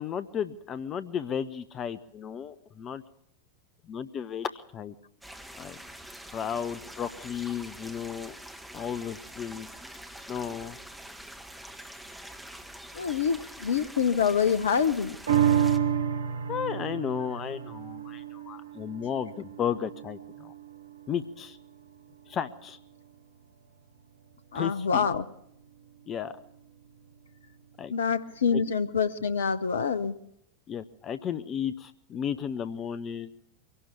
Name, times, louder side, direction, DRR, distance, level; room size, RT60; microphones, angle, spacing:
voice 1, 0.0-3.0 3.9-4.9 5.6-5.8 6.3-8.3 8.7-9.7 10.3-10.8 16.5-20.5 21.1-21.6 22.3-22.8 24.5-25.1 26.1-26.3 27.8-27.9 28.5-28.6 30.7-33.3, left 8 dB, 30° left, 14 dB, 0.9 m, -34 dB
sound 1, 5.2-15.8, right 1 dB, ahead, 2.0 m, -45 dB
voice 2, 12.9-15.2 24.5-25.2 27.9-30.2, left 6 dB, 65° left, 13 dB, 0.8 m, -26 dB
sound 2, 15.3-21.9 22.4-22.5, right 9 dB, 65° right, 1.1 m, -30 dB
23.5 x 18.0 x 7.1 m, 0.75 s
figure-of-eight pair, 90°, 0 cm